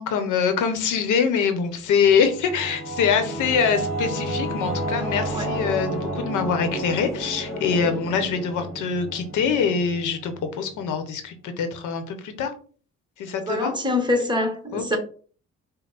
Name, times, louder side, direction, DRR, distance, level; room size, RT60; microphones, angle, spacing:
voice 1, 0.0-12.5 13.2-13.7 14.7-15.0, left 6 dB, 85° left, 0.9 m, -24 dB
Singing / Musical instrument, 1.8-11.0, right 1 dB, ahead, 2.0 m, -31 dB
voice 2, 13.5-15.0, left 2 dB, 15° right, 1.2 m, -24 dB
5.4 x 2.1 x 4.0 m
cardioid pair, 90°, 30 cm